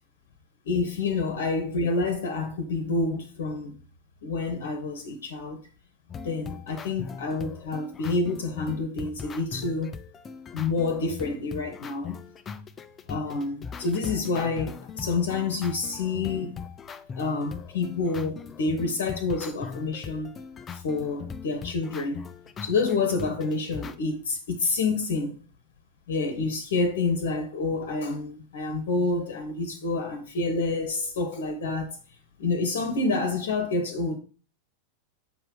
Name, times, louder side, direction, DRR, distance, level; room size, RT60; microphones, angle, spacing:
voice 1, 0.6-3.8 4.2-5.6 6.2-10.0 10.5-12.2 13.1-16.6 17.2-20.3 20.7-22.3 22.6-25.4 26.1-32.0 32.4-34.2, left 3 dB, 60° left, 1.0 m, -28 dB
sound 1, 6.1-24.0, left 6 dB, 20° left, 0.5 m, -40 dB
7.3 x 4.5 x 3.7 m
figure-of-eight pair, 90°, 0 cm